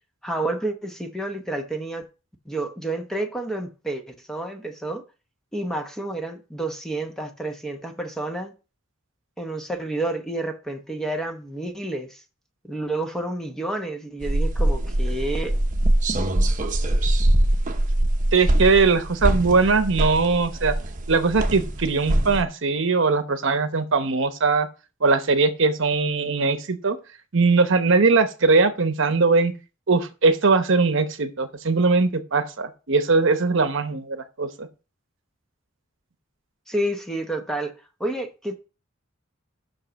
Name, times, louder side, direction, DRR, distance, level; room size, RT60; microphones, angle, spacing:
voice 1, 0.2-2.0 2.5-5.0 5.5-8.5 9.4-12.2 12.6-15.5 36.7-37.7 38.0-38.6, right 2 dB, 5° left, 0.9 m, -29 dB
sound 1, 14.2-22.4, right 1 dB, 40° right, 0.9 m, -23 dB
voice 2, 18.3-20.7 21.1-24.7 25.0-27.0 27.3-29.5 29.9-34.7, right 4 dB, 65° right, 0.9 m, -20 dB
6.2 x 5.4 x 6.3 m
head